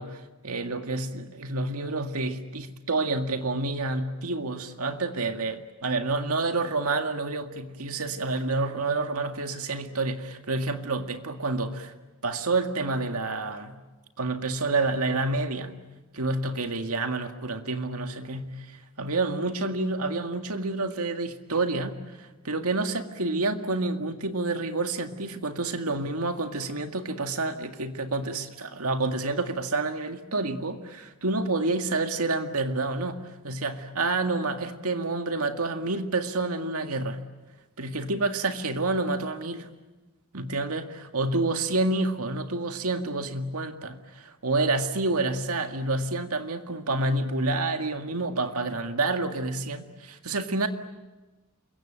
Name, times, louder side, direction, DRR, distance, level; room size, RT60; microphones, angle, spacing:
voice 1, 0.0-11.9 12.2-13.8 14.2-15.8 16.1-37.3 37.8-39.7 40.3-50.7, right 3 dB, 85° right, 6 dB, 2.0 m, -29 dB
28.0 x 23.0 x 9.0 m, 1.2 s
head